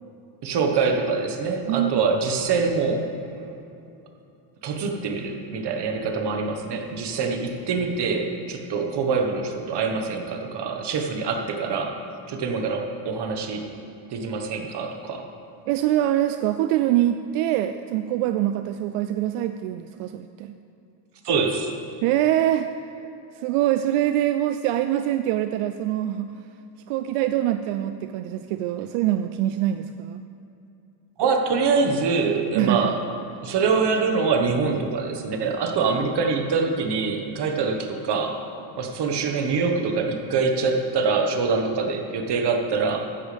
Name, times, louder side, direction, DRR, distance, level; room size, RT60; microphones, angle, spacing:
voice 1, 0.4-3.1 4.6-11.9 12.3-13.7 14.1-15.3 21.2-21.7 31.2-33.0 33.4-38.4 38.8-43.1, right 4 dB, 55° right, 4 dB, 1.5 m, -24 dB
voice 2, 1.7-2.1 15.7-20.5 22.0-22.9 23.3-26.3 26.9-30.2 32.5-33.0, right 12 dB, 85° right, 9 dB, 0.6 m, -24 dB
14.5 x 10.5 x 3.5 m, 2.7 s
cardioid pair, 110°, 49 cm